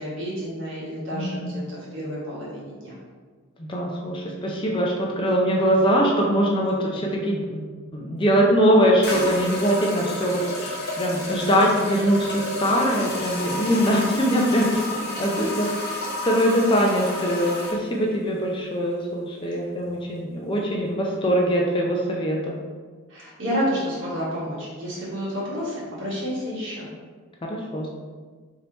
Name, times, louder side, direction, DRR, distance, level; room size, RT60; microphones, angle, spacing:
voice 1, 0.0-3.0 14.6-14.8 15.4-15.8 23.1-26.9, equal, 60° right, -7 dB, 1.4 m, -30 dB
voice 2, 1.1-1.5 3.6-7.7 7.9-14.7 15.2-15.7 16.2-22.5 27.4-27.9, equal, 25° left, -1 dB, 0.4 m, -22 dB
sound 1, 8.2-8.3 9.0-17.8, left 1 dB, 50° left, 0.9 m, -31 dB
3.4 x 2.7 x 3.9 m, 1.5 s
head